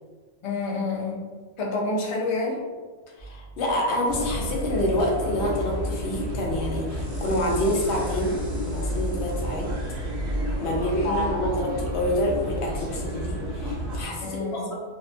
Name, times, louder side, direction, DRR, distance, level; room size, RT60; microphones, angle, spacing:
voice 1, 0.4-1.2 1.6-2.6 10.6-11.5 14.2-14.7, left 3 dB, 45° left, -2 dB, 0.4 m, -29 dB
voice 2, 3.2-8.4 8.6-9.7 10.6-14.7, left 1 dB, 85° left, -1 dB, 0.9 m, -27 dB
sound 1, 3.2-14.1, right 2 dB, 15° left, 0.8 m, -48 dB
sound 2, 4.1-14.0, equal, 55° right, 0.7 m, -30 dB
2.7 x 2.1 x 2.6 m, 1.4 s
omnidirectional pair, 1.1 m